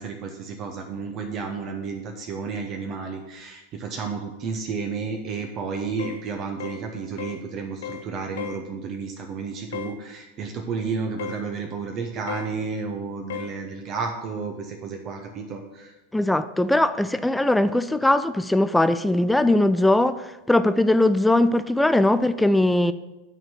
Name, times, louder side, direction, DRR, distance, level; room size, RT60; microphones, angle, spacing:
voice 1, 0.0-15.9, right 5 dB, 35° right, 0.9 m, -32 dB
sound 1, 6.0-6.2 6.6-6.8 7.2-7.4 7.8-8.1 8.4-8.6 9.7-10.0 11.2-11.4 12.3-12.5 13.3-13.5, left 9 dB, 60° left, 0.5 m, -34 dB
voice 2, 16.1-22.9, left 1 dB, 5° left, 0.4 m, -20 dB
9.1 x 4.5 x 7.3 m
figure-of-eight pair, 90°, 0 cm